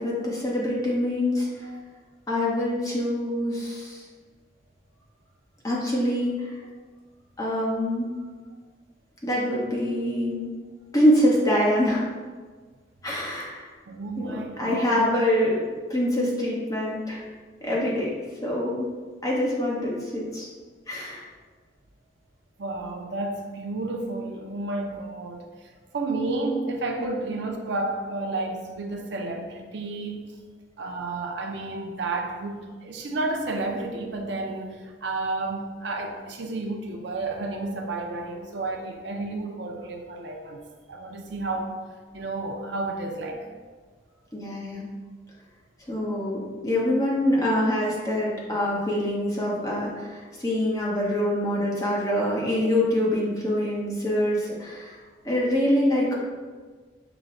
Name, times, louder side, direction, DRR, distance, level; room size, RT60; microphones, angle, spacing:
voice 1, 0.0-1.7 2.3-4.0 5.6-6.6 7.4-8.1 9.2-10.5 10.9-12.1 13.0-13.7 14.2-15.6 15.9-17.2 17.6-18.1 18.4-18.9 19.2-20.5 20.9-21.2 44.3-44.9 45.9-55.0 55.2-56.2, left 1 dB, 20° left, -5 dB, 0.9 m, -25 dB
voice 2, 13.9-15.2 22.6-25.4 25.9-30.3 30.8-41.8 42.1-43.5 47.4-47.5, right 2 dB, 75° right, 2 dB, 0.5 m, -31 dB
5.8 x 2.1 x 3.8 m, 1.4 s
head